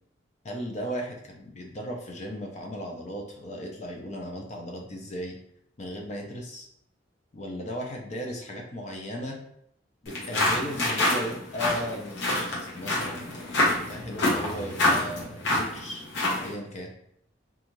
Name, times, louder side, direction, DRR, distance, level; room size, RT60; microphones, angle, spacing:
voice 1, 0.4-5.4 5.8-6.7 7.3-9.4 10.0-16.9, equal, 35° left, 1 dB, 0.5 m, -36 dB
sound 1, 10.1-16.5, left 1 dB, 65° left, 0.9 m, -27 dB
2.5 x 2.4 x 3.0 m, 0.73 s
head